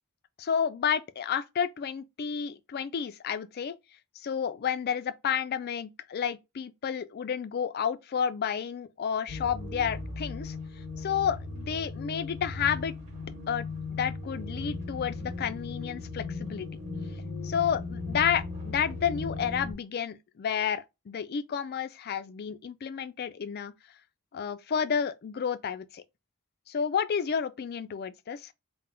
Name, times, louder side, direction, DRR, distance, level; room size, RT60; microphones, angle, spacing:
voice 1, 0.4-3.8 4.2-10.5 11.0-12.9 13.5-16.7 17.4-23.7 24.3-26.0 26.7-28.5, left 7 dB, 50° left, 0.4 m, -31 dB
sound 1, 9.3-19.7, left 3 dB, 35° right, 1.4 m, -37 dB
3.8 x 2.1 x 4.3 m
head